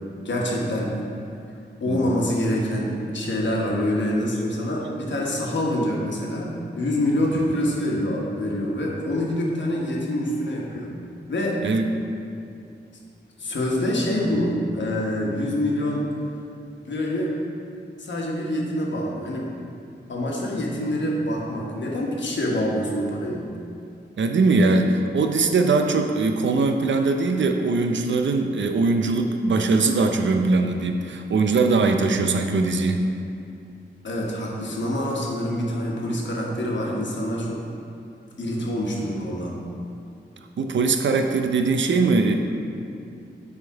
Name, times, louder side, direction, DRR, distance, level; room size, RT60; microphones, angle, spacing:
voice 1, 0.2-0.9 1.8-10.9 11.3-11.6 13.4-16.0 16.8-17.3 18.0-19.5 20.1-23.5 34.0-37.6 38.4-39.6, left 1 dB, 80° left, -2 dB, 1.2 m, -26 dB
voice 2, 11.6-11.9 24.2-33.0 40.6-42.3, right 3 dB, 80° right, 5 dB, 0.6 m, -21 dB
9.6 x 3.6 x 4.6 m, 2.5 s
wide cardioid pair, 115°, 19 cm